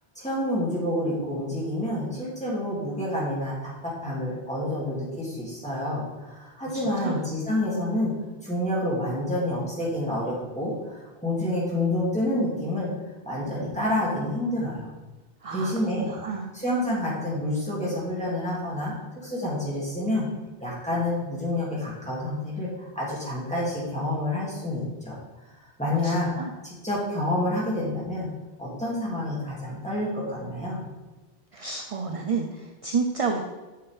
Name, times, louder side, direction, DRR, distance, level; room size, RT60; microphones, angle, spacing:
voice 1, 0.1-8.1 8.4-12.9 13.3-14.9 15.5-16.1 16.5-20.3 20.6-25.2 25.6-26.5 26.8-28.3 28.6-30.8, left 1 dB, 5° left, -7 dB, 2.4 m, -28 dB
voice 2, 6.7-7.2 15.4-15.7 16.0-16.5 25.9-26.5 31.5-33.4, right 4 dB, 40° right, 3 dB, 0.5 m, -30 dB
7.5 x 6.2 x 3.4 m, 1.2 s
omnidirectional pair, 1.1 m